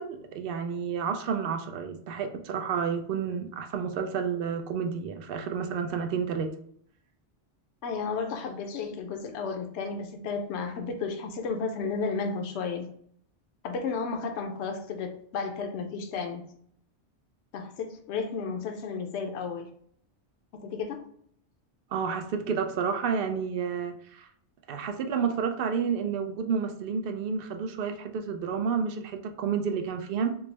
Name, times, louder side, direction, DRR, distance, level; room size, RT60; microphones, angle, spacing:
voice 1, 0.0-6.5 21.9-24.3 24.7-30.4, right 6 dB, 60° right, 6 dB, 0.7 m, -30 dB
voice 2, 7.8-12.9 13.6-16.4 17.5-19.7 20.5-21.1, left 5 dB, 75° left, 4 dB, 0.9 m, -33 dB
4.6 x 2.0 x 3.2 m, 0.63 s
omnidirectional pair, 1.2 m